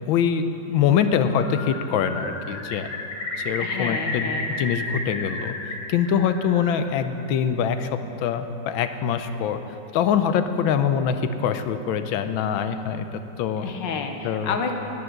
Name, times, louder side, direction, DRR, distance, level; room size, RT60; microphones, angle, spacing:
voice 1, 0.1-0.4 0.7-2.9 3.4-4.3 4.6-5.5 5.9-9.6 9.9-13.6 14.2-14.5, left 8 dB, 85° left, 9 dB, 1.4 m, -24 dB
Bird, 1.2-5.7 6.1-6.9, left 2 dB, 45° left, 1.4 m, -32 dB
voice 2, 3.6-4.5 13.6-14.7, left 5 dB, 70° left, 5 dB, 1.5 m, -30 dB
11.0 x 9.9 x 6.6 m, 3.0 s
omnidirectional pair, 2.1 m